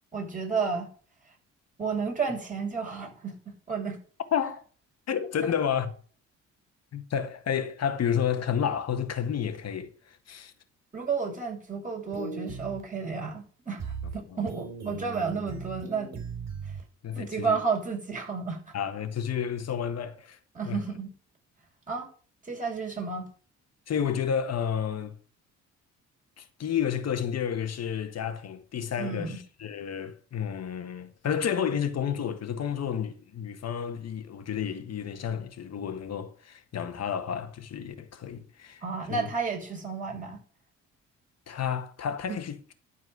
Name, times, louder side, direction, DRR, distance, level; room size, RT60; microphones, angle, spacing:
voice 1, 0.1-0.9 1.8-3.4 3.7-4.0 10.9-16.1 17.1-18.6 20.5-21.1 21.9-22.1 22.4-23.3 29.0-29.4 38.8-40.4 42.3-42.4, right 5 dB, 25° right, 6.6 m, -31 dB
voice 2, 4.3-4.6 5.1-5.9 6.9-10.5 14.3-14.5 17.0-17.6 18.7-20.4 20.7-20.8 23.9-25.2 26.4-38.8 39.1-39.3 41.5-42.7, left 8 dB, 55° left, 1.7 m, -31 dB
sound 1, 12.1-12.8 13.8-14.1 14.5-16.8, right 5 dB, 60° right, 3.6 m, -38 dB
12.5 x 4.7 x 8.0 m
cardioid pair, 90°, 30 cm